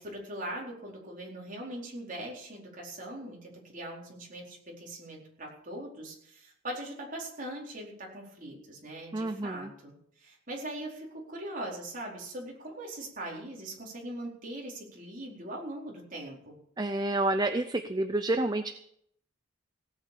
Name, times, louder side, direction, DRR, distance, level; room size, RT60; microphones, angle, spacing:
voice 1, 0.0-16.5, right 1 dB, 40° right, -2 dB, 4.4 m, -41 dB
voice 2, 9.1-9.7 16.8-18.7, right 2 dB, 20° right, 8 dB, 0.6 m, -29 dB
17.5 x 8.7 x 6.9 m, 0.69 s
head